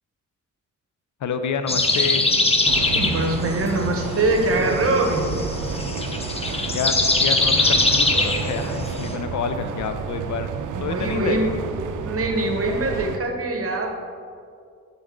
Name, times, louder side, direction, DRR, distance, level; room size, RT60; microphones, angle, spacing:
voice 1, 1.2-2.3 6.7-10.5 10.8-11.4, left 6 dB, 65° left, 9 dB, 0.5 m, -28 dB
sound 1, 1.7-9.1, left 2 dB, 20° left, 0.6 m, -23 dB
sound 2, 2.6-13.2, right 6 dB, 75° right, 0.5 m, -31 dB
voice 2, 2.9-5.3 10.7-11.5 12.0-13.9, right 2 dB, 45° right, 3 dB, 0.9 m, -23 dB
7.3 x 3.8 x 3.6 m, 2.2 s
cardioid pair, 85°, 32 cm